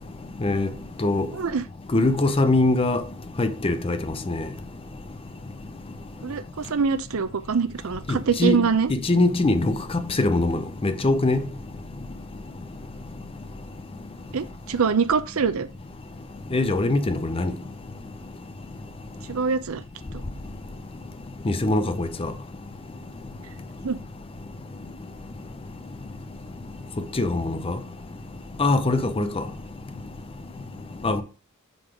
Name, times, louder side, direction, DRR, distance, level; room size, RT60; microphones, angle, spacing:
voice 1, 0.4-0.7 1.0-1.3 1.9-3.0 3.4-4.0 4.3-4.5 8.1-8.6 8.9-9.8 10.2-11.4 16.5-17.5 21.5-22.3 27.1-27.8 28.6-29.4 31.0-31.2, left 2 dB, 25° left, 0.6 m, -22 dB
voice 2, 1.3-1.6 6.2-8.9 14.3-15.7 19.3-19.8 23.8-24.0, right 5 dB, 70° right, 0.6 m, -24 dB
6.5 x 4.0 x 4.6 m
head